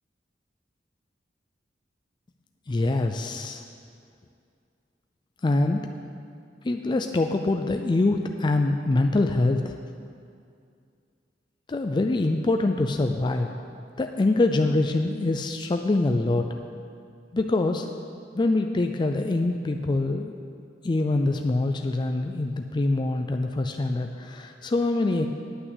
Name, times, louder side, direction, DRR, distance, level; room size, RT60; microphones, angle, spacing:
voice 1, 2.7-3.6 5.4-5.8 6.6-9.7 11.7-13.5 14.0-16.4 17.3-17.9 18.3-20.4 20.8-25.3, left 2 dB, 25° left, 5 dB, 0.4 m, -24 dB
9.4 x 5.8 x 8.1 m, 2.3 s
head